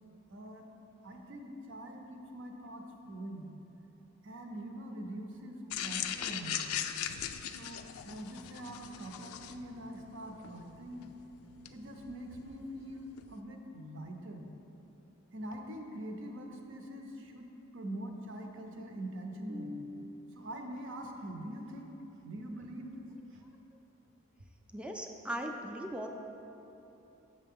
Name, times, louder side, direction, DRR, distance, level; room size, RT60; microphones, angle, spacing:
voice 1, 0.3-0.7 1.0-3.5 4.2-6.7 7.5-11.1 11.7-14.5 15.3-21.9 22.2-23.4, right 1 dB, 60° right, 3 dB, 0.7 m, -44 dB
sound 1, 5.7-13.3, left 10 dB, 85° left, 0.3 m, -40 dB
voice 2, 24.7-26.1, right 1 dB, 5° right, 2 dB, 0.4 m, -39 dB
6.6 x 6.1 x 3.6 m, 3.0 s
head